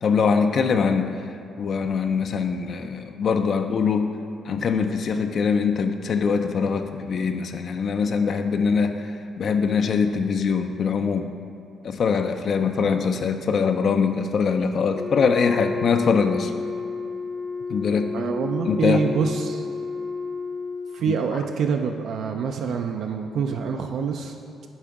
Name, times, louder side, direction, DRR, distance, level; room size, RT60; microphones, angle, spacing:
voice 1, 0.0-1.1 1.6-4.1 4.5-11.3 11.8-16.5 17.7-18.1 18.7-19.0, left 5 dB, 55° left, 6 dB, 0.3 m, -23 dB
Wind instrument woodwind instrument, 14.9-21.0, left 4 dB, 10° left, 0.6 m, -31 dB
voice 2, 18.1-19.6 20.9-24.4, right 6 dB, 70° right, 4 dB, 0.3 m, -26 dB
7.3 x 3.4 x 4.7 m, 2.4 s
cardioid pair, 90°, 0 cm